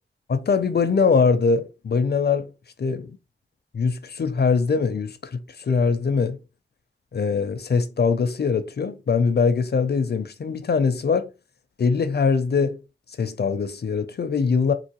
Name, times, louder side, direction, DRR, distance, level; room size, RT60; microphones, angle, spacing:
voice 1, 0.3-2.5 2.8-3.2 3.7-6.4 7.1-11.3 11.8-12.8 13.2-14.7, left 5 dB, 55° left, 0.5 m, -22 dB
3.7 x 2.5 x 2.9 m
wide cardioid pair, 90°, 21 cm